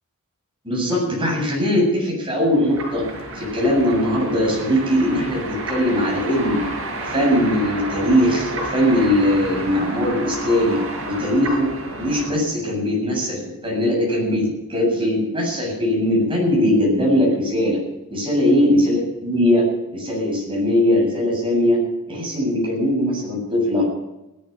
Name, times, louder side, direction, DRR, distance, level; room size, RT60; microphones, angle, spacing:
voice 1, 0.6-3.1 3.3-6.6 7.0-10.8 11.0-11.7 12.0-17.8 18.1-19.7 19.9-21.8 22.1-23.9, left 1 dB, 25° right, -2 dB, 7.9 m, -20 dB
sound 1, 2.5-12.3, right 1 dB, 65° right, 5.4 m, -31 dB
17.0 x 12.0 x 6.9 m, 0.94 s
head